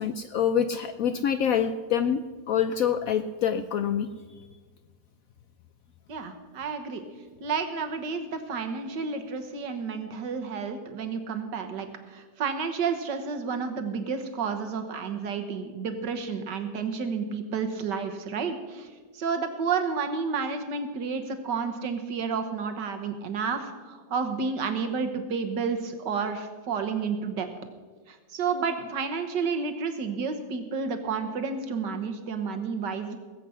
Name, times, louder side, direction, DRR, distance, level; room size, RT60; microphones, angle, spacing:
voice 1, 0.0-2.2 2.5-4.1, left 8 dB, 75° left, 10 dB, 0.8 m, -26 dB
voice 2, 6.1-7.0 7.4-27.5 28.1-33.2, right 5 dB, 70° right, 7 dB, 1.8 m, -31 dB
19.5 x 8.1 x 5.7 m, 1.4 s
omnidirectional pair, 2.0 m